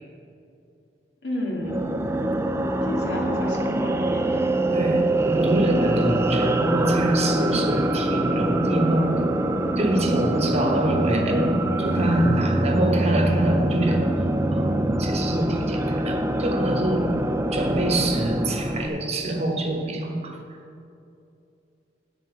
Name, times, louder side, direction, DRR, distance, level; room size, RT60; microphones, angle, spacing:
voice 1, 1.2-1.8 2.8-4.4 6.3-6.6 11.2-11.5, left 1 dB, 75° left, -1 dB, 2.1 m, -32 dB
sound 1, 1.6-18.9, right 1 dB, 15° right, 0.4 m, -24 dB
voice 2, 4.7-5.0 5.3-9.1 9.8-14.1 14.5-17.1 17.5-20.4, right 1 dB, 40° right, 2 dB, 1.2 m, -25 dB
12.0 x 4.3 x 8.2 m, 2.6 s
head